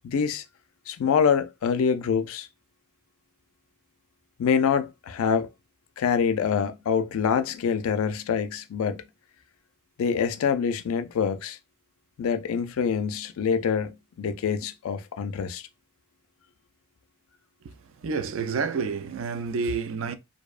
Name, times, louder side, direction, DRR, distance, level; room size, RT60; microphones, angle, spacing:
voice 1, 0.0-0.4 0.9-2.5 4.4-5.5 6.0-9.0 10.0-11.6 12.2-15.7, left 6 dB, 75° left, 0.3 m, -25 dB
voice 2, 18.0-20.2, right 5 dB, 65° right, 0.3 m, -29 dB
2.6 x 2.1 x 2.3 m
head